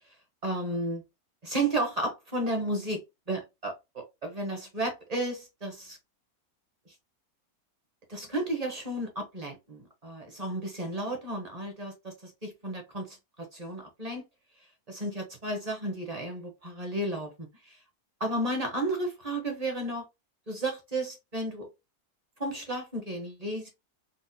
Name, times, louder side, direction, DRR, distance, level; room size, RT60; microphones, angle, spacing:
voice 1, 0.4-1.0 1.4-6.0 8.1-14.2 14.9-17.8 18.2-20.0 20.5-21.7 22.4-23.7, right 1 dB, 35° right, 0.8 m, -33 dB
4.1 x 2.1 x 2.6 m
omnidirectional pair, 1.6 m